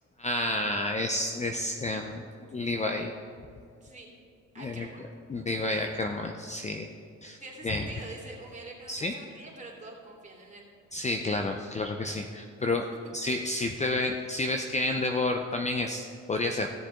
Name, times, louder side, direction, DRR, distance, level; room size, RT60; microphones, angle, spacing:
voice 1, 0.2-2.2 2.5-3.1 4.6-4.9 5.3-6.9 7.2-7.4 7.6-7.9 8.9-9.1 10.9-12.9 13.1-16.7, left 2 dB, 25° left, 4 dB, 0.6 m, -30 dB
voice 2, 3.8-4.1 4.5-5.1 5.7-5.9 6.7-6.8 7.4-10.7, right 2 dB, 25° right, -3 dB, 2.8 m, -45 dB
16.0 x 7.2 x 3.8 m, 2.4 s
cardioid pair, 90°, 30 cm